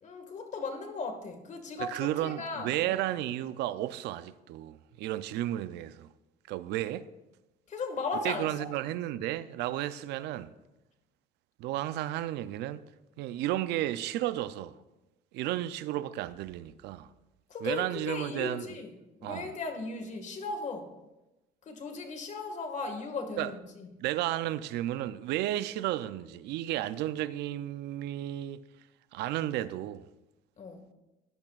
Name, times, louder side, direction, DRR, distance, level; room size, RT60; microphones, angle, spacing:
voice 1, 0.0-3.0 7.7-8.7 17.5-18.9 19.2-20.9 21.6-23.9 30.6-30.9, left 4 dB, 45° left, 1.8 m, -37 dB
voice 2, 1.8-6.1 6.5-7.1 8.2-10.5 11.6-12.8 13.2-14.8 15.3-17.1 17.6-18.7 19.2-19.5 23.4-23.5 24.0-28.6 29.1-30.1, right 14 dB, 85° right, 0.5 m, -33 dB
17.5 x 10.5 x 2.4 m
cardioid pair, 110°, 17 cm